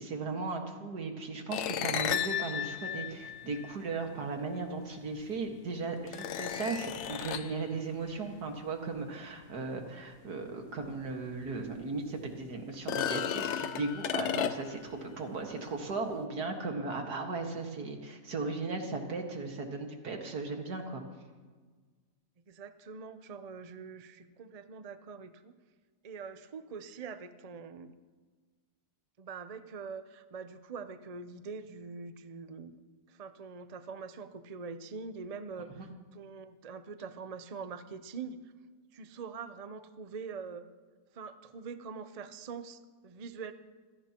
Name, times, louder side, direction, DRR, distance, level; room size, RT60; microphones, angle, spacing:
voice 1, 0.0-21.0 35.7-35.9, right 3 dB, 75° right, 3 dB, 2.2 m, -37 dB
sound 1, 1.5-4.0 5.2-5.3 6.1-7.6 10.9-11.0 11.4-11.5 12.7-14.9, left 9 dB, 65° left, 0.7 m, -34 dB
voice 2, 22.5-25.5 26.0-27.9 29.2-32.7 33.1-38.4 38.9-40.6 41.1-43.5, right 5 dB, 50° right, 10 dB, 0.4 m, -44 dB
25.5 x 17.0 x 3.0 m, 1.4 s
omnidirectional pair, 1.7 m